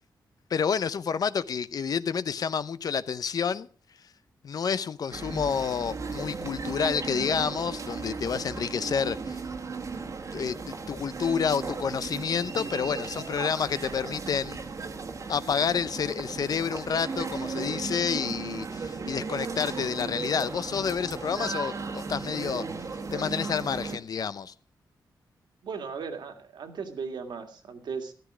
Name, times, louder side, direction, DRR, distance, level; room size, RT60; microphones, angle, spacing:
voice 1, 0.5-3.7 4.4-9.4 10.3-14.6 15.3-22.6 23.1-24.5, left 6 dB, 55° left, 0.7 m, -29 dB
sound 1, 5.1-24.0, right 4 dB, 45° right, 1.5 m, -36 dB
voice 2, 25.6-28.1, right 5 dB, 75° right, 2.2 m, -37 dB
13.5 x 13.0 x 4.9 m
wide cardioid pair, 125°, 8 cm